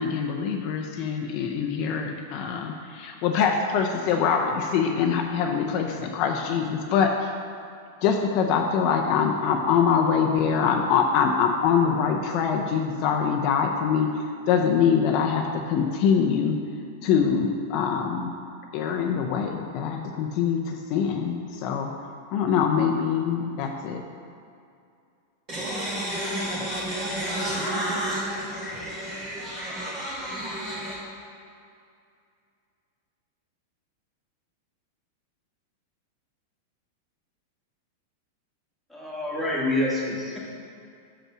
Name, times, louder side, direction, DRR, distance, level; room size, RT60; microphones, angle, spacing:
voice 1, 0.0-7.5 8.0-16.6 17.0-18.3 18.7-21.9 22.3-24.0, left 6 dB, 45° left, 0.6 m, -24 dB
voice 2, 25.5-31.0, right 1 dB, 30° right, 1.5 m, -30 dB
voice 3, 38.9-40.4, left 1 dB, ahead, 1.5 m, -27 dB
6.1 x 5.4 x 6.2 m
supercardioid pair, 150°, 0 cm